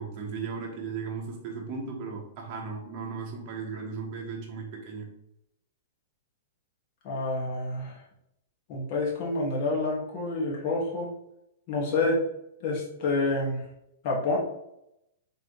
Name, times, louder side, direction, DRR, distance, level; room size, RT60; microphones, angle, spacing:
voice 1, 0.0-5.1, right 5 dB, 40° right, -1 dB, 0.9 m, -36 dB
voice 2, 7.0-8.0 8.7-11.1 11.7-12.2 12.6-13.7 14.0-14.4, left 2 dB, 45° left, -3 dB, 1.5 m, -28 dB
4.1 x 3.5 x 3.0 m, 0.83 s
hypercardioid pair, 140°, 0 cm